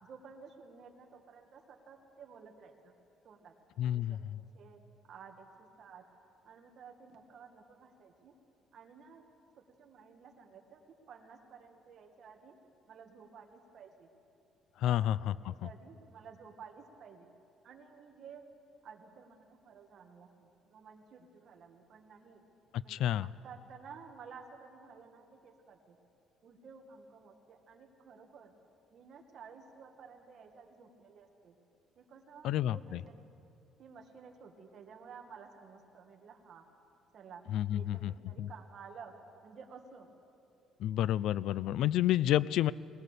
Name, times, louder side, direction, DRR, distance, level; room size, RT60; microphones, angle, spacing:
voice 1, 0.0-2.9 3.2-3.5 3.8-4.2 4.5-4.8 5.1-6.0 6.4-8.3 8.7-9.2 9.6-10.8 11.1-12.6 12.9-14.1 14.9-17.3 17.6-18.4 18.8-22.4 22.8-26.0 26.4-28.5 28.9-31.5 32.0-33.3 33.8-36.7 37.1-37.4 37.7-39.1 39.4-40.1, right 6 dB, 45° right, 3 dB, 1.9 m, -53 dB
voice 2, 3.8-4.4 14.8-15.5 22.9-23.3 32.4-33.0 37.5-38.1 38.4-38.5 40.8-42.7, left 12 dB, 65° left, 20 dB, 0.4 m, -30 dB
20.5 x 19.0 x 6.8 m, 2.7 s
cardioid pair, 170°, 0 cm